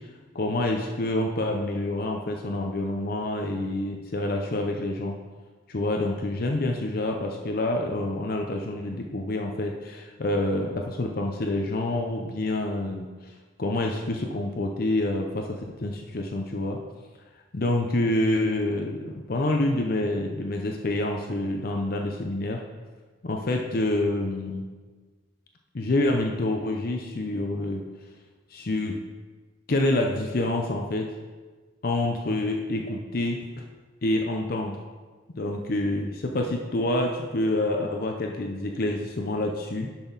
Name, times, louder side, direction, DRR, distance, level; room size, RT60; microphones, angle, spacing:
voice 1, 0.3-5.2 5.7-16.8 17.5-22.6 23.2-24.7 25.7-27.9 28.5-29.0 29.7-31.1 31.8-33.6 34.0-34.8 35.4-39.9, left 1 dB, 50° left, 2 dB, 0.6 m, -27 dB
11.0 x 6.0 x 4.0 m, 1.4 s
head